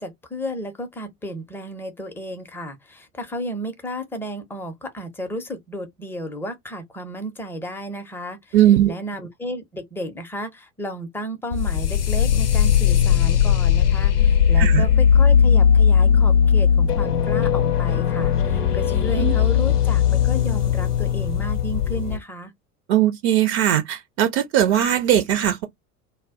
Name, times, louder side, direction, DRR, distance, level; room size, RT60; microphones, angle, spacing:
voice 1, 0.0-8.6 8.9-22.5, equal, 5° left, 0.5 m, -33 dB
voice 2, 8.5-8.9 14.6-14.9 19.2-19.3 22.9-25.7, right 11 dB, 45° right, 0.5 m, -19 dB
sound 1, 11.5-22.2, left 8 dB, 90° left, 0.6 m, -18 dB
2.2 x 2.0 x 3.5 m
figure-of-eight pair, 80°, 45 cm